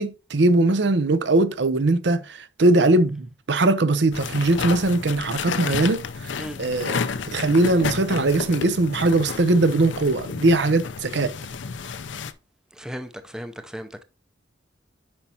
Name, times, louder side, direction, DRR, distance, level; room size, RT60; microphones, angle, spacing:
voice 1, 0.0-6.0 6.6-7.0 7.3-11.3, right 2 dB, 65° right, 0.7 m, -20 dB
sound 1, 4.1-12.3, left 5 dB, 75° left, 0.6 m, -31 dB
voice 2, 12.7-14.0, equal, 5° right, 0.5 m, -36 dB
8.9 x 5.6 x 2.8 m
head